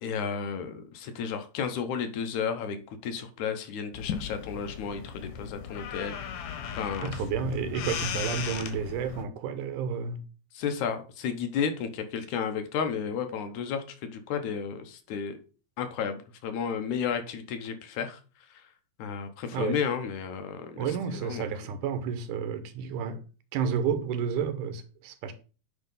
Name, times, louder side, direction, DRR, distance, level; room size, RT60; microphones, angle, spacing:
voice 1, 0.0-6.2 6.8-7.2 10.5-15.4 15.8-18.2 18.5-18.6 19.0-20.9 21.1-21.4, left 7 dB, 75° left, 2.3 m, -32 dB
sound 1, 3.9-9.2, left 8 dB, 90° left, 2.7 m, -36 dB
voice 2, 7.0-10.2 19.5-19.8 20.8-23.2 23.5-25.3, right 7 dB, 80° right, 2.3 m, -31 dB
9.5 x 3.7 x 5.4 m
omnidirectional pair, 3.6 m